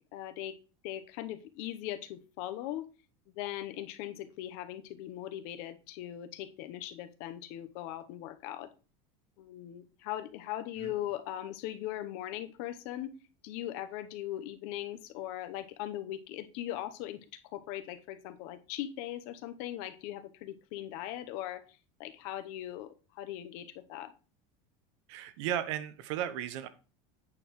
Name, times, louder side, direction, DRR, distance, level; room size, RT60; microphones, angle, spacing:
voice 1, 0.1-0.6 0.8-2.9 3.3-8.7 9.4-13.2 13.4-24.1, left 13 dB, 60° left, 11 dB, 0.9 m, -40 dB
voice 2, 25.1-26.7, right 10 dB, 70° right, 12 dB, 1.0 m, -35 dB
8.6 x 6.8 x 3.1 m, 0.34 s
cardioid pair, 160°, 16 cm